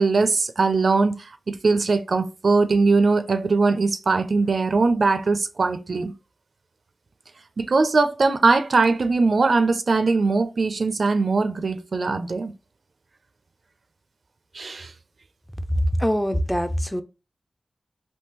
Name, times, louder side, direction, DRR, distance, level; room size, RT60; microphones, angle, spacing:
voice 1, 0.0-6.1 7.6-12.5 14.5-14.9, right 3 dB, 70° right, 0.4 m, -21 dB
voice 2, 15.7-17.0, equal, 5° left, 0.4 m, -23 dB
3.6 x 2.6 x 2.8 m
wide cardioid pair, 60°, 0 cm